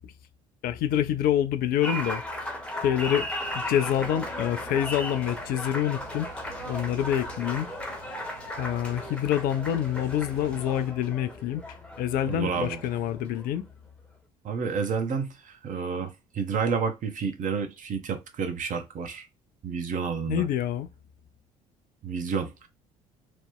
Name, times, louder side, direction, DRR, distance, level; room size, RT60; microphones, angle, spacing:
voice 1, 0.6-2.2 2.8-3.3 3.5-6.3 6.6-7.7 8.6-11.6 12.0-13.7 20.3-20.9, left 10 dB, 50° left, 0.4 m, -26 dB
Applause, 1.8-13.6, left 1 dB, 5° left, 0.8 m, -36 dB
sound 1, 3.4-10.9, right 5 dB, 75° right, 1.3 m, -49 dB
voice 2, 12.3-12.8 14.4-19.3 19.6-20.5 22.0-22.7, right 6 dB, 40° right, 0.8 m, -30 dB
3.0 x 2.1 x 3.5 m
figure-of-eight pair, 55°, 20 cm